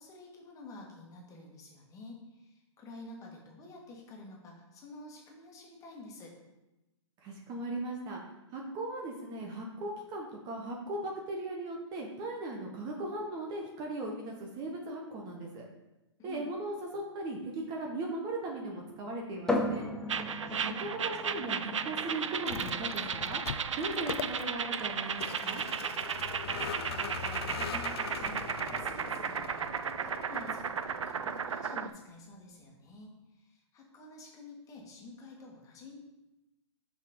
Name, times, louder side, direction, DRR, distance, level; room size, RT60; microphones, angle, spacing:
voice 1, 0.0-6.4 16.2-16.5 20.4-20.7 26.5-27.2 27.5-36.0, left 2 dB, 20° left, -1 dB, 1.8 m, -49 dB
voice 2, 7.2-8.2 8.5-15.6 16.2-19.9 20.5-23.4 23.8-25.6, right 2 dB, 25° right, 0 dB, 1.1 m, -38 dB
sound 1, 19.5-33.0, left 1 dB, 5° left, 0.8 m, -41 dB
sound 2, 20.1-31.9, right 6 dB, 85° right, 0.4 m, -35 dB
Vehicle, 22.3-31.7, left 8 dB, 55° left, 0.5 m, -42 dB
6.3 x 5.1 x 3.8 m, 0.99 s
hypercardioid pair, 125°, 15 cm